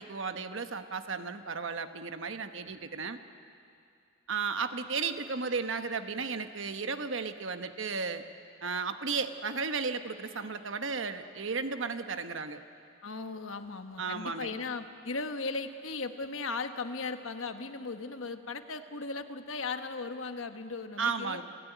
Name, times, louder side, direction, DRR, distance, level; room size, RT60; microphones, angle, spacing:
voice 1, 0.0-3.2 4.3-8.2 8.6-12.6 14.0-14.6 21.0-21.4, right 5 dB, 65° right, 8 dB, 1.2 m, -34 dB
voice 2, 13.0-21.4, left 3 dB, 70° left, 8 dB, 1.2 m, -37 dB
28.5 x 15.5 x 9.3 m, 2.5 s
head